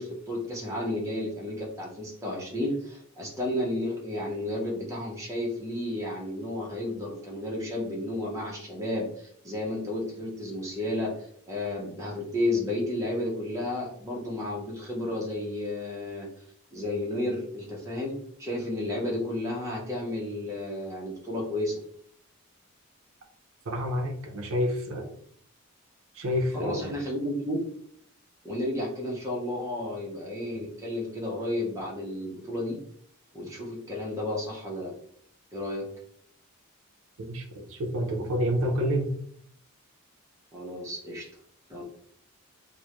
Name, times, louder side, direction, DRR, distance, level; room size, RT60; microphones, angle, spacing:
voice 1, 0.0-16.3 16.7-21.8 26.5-27.6 28.4-32.8 33.3-34.9 35.5-35.9 40.5-41.3 41.7-41.8, left 1 dB, 15° right, -3 dB, 0.5 m, -32 dB
voice 2, 23.7-25.1 26.1-26.9 37.2-39.2, equal, 65° right, 2 dB, 0.4 m, -28 dB
2.3 x 2.0 x 2.8 m, 0.64 s
head